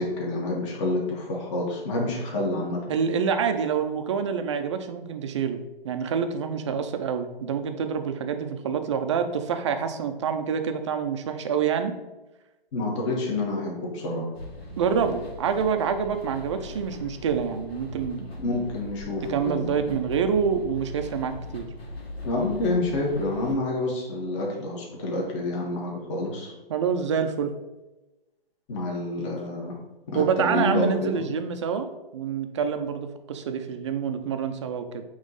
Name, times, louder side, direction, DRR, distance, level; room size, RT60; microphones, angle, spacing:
voice 1, 0.0-3.0 12.7-14.3 18.4-19.9 22.2-26.5 28.7-29.8 30.1-31.2, left 2 dB, 30° left, -2 dB, 1.4 m, -28 dB
voice 2, 2.9-11.9 14.8-18.7 19.3-21.7 26.7-27.5 30.1-31.9 32.1-35.0, right 7 dB, 30° right, 7 dB, 0.5 m, -27 dB
sound 1, 14.3-23.5, left 2 dB, 80° left, 1.8 m, -40 dB
8.9 x 3.1 x 3.9 m, 1.1 s
hypercardioid pair, 145°, 30 cm